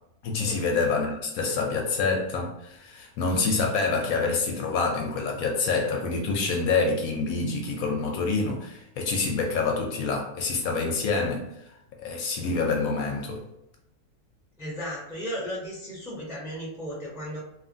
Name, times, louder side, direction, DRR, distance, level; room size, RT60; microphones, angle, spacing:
voice 1, 0.2-11.7 12.0-13.4, left 4 dB, 70° left, 1 dB, 0.9 m, -27 dB
voice 2, 14.6-17.4, equal, 5° right, -5 dB, 0.5 m, -35 dB
2.8 x 2.4 x 2.6 m, 0.84 s
omnidirectional pair, 1.7 m